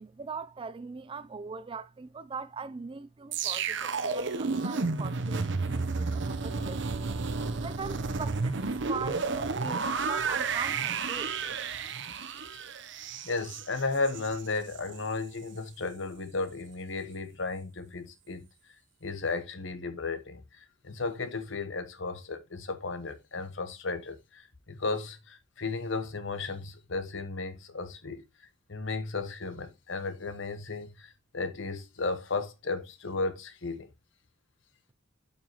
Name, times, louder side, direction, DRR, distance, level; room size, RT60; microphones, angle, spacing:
voice 1, 0.0-7.0 7.4-11.6, right 5 dB, 25° right, 0.4 m, -41 dB
sound 1, 3.3-14.4 14.7-15.0, right 4 dB, 65° right, 0.8 m, -32 dB
voice 2, 13.2-18.5 19.0-28.2 28.7-33.9, left 3 dB, 70° left, 1.1 m, -34 dB
9.1 x 5.6 x 3.0 m
head